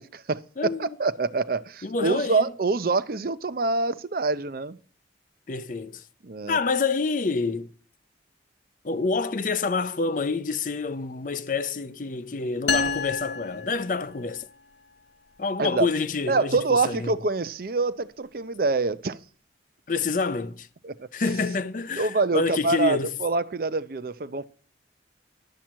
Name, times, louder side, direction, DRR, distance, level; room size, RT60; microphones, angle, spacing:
voice 1, 0.0-4.8 6.2-6.6 15.6-15.9 16.3-19.2 20.8-21.0 22.0-24.4, right 3 dB, 50° right, 0.5 m, -26 dB
voice 2, 0.6-1.0 1.8-2.5 5.5-6.0 6.5-7.7 8.8-14.5 15.4-17.1 19.9-20.7 21.1-23.1, left 4 dB, 45° left, 0.6 m, -27 dB
sound 1, 12.7-14.4, left 5 dB, 75° left, 1.0 m, -29 dB
11.5 x 4.5 x 7.4 m
head